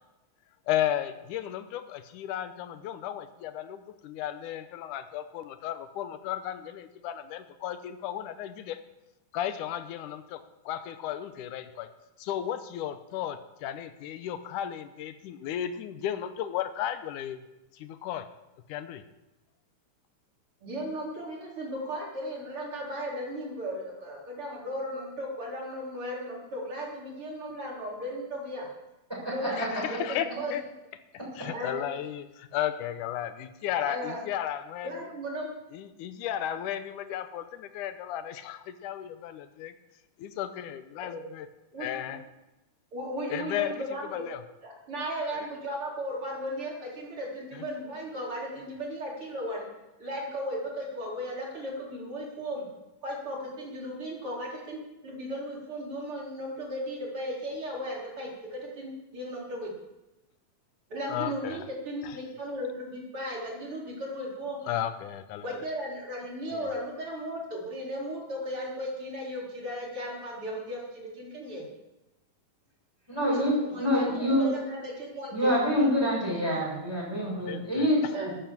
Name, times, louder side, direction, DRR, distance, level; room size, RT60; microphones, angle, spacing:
voice 1, 0.7-8.8 9.3-10.4 10.7-11.9 12.2-17.4 17.7-18.3 18.7-19.0 29.6-30.6 31.4-35.1 35.7-39.7 40.2-41.5 41.8-42.2 43.3-43.8 44.1-44.4 45.3-45.5 47.5-47.6 61.1-61.6 62.0-62.1 64.7-65.6 66.5-66.7 77.4-78.1, left 11 dB, 75° left, 11 dB, 2.0 m, -34 dB
voice 2, 20.6-28.7 29.2-30.5 31.5-31.8 33.8-34.2 34.8-35.5 41.0-41.2 41.7-42.1 42.9-44.2 44.6-49.7 50.0-52.6 53.0-59.7 60.9-64.6 65.4-71.6 73.3-75.6 78.1-78.3, equal, 35° right, -3 dB, 4.7 m, -36 dB
voice 3, 73.1-74.5 75.3-78.0 78.3-78.4, equal, 5° right, -5 dB, 6.8 m, -26 dB
13.5 x 12.0 x 7.4 m, 0.99 s
omnidirectional pair, 4.2 m